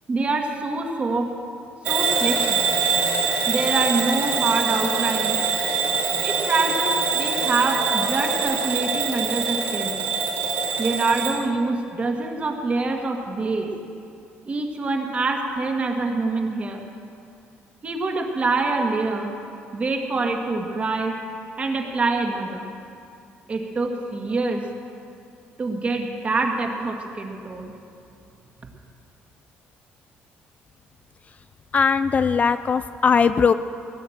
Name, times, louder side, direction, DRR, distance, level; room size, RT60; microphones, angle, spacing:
voice 1, 0.1-1.3 1.9-2.6 3.5-5.4 6.2-10.0 10.8-13.7 14.5-16.8 17.8-19.3 19.7-21.1 21.6-22.7 23.5-24.6 25.6-27.7, right 3 dB, 30° right, 2 dB, 1.9 m, -25 dB
Bell / Alarm, 1.9-11.4, right 5 dB, 60° right, 3.0 m, -24 dB
voice 2, 31.7-33.5, left 6 dB, 35° left, 12 dB, 0.4 m, -19 dB
18.0 x 8.4 x 7.3 m, 2.5 s
cardioid pair, 110°, 4 cm